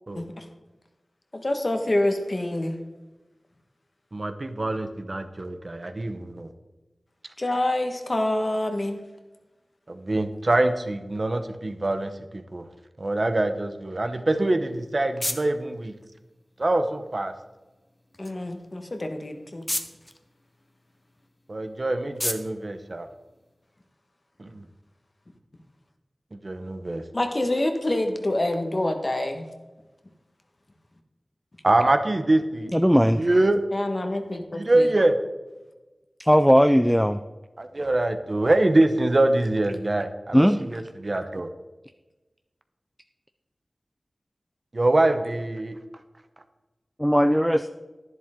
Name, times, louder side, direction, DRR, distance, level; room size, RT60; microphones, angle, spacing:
voice 1, 0.1-0.5 1.3-2.8 7.4-9.0 18.2-19.6 27.1-29.5 33.7-34.9, left 1 dB, 45° left, 5 dB, 1.4 m, -26 dB
voice 2, 4.1-6.5 9.9-12.7 13.0-16.0 16.6-17.3 21.5-23.1 24.4-24.6 26.3-27.0 31.6-32.7 33.1-33.6 34.5-35.2 37.6-41.5 44.7-45.8, right 2 dB, 50° right, 8 dB, 0.9 m, -24 dB
sound 1, 14.4-23.8, left 1 dB, 20° left, 1.0 m, -38 dB
voice 3, 32.7-33.2 36.2-37.2 40.3-40.6 47.0-47.7, equal, ahead, 9 dB, 0.4 m, -18 dB
11.0 x 10.5 x 3.7 m, 1.1 s
wide cardioid pair, 55°, 0 cm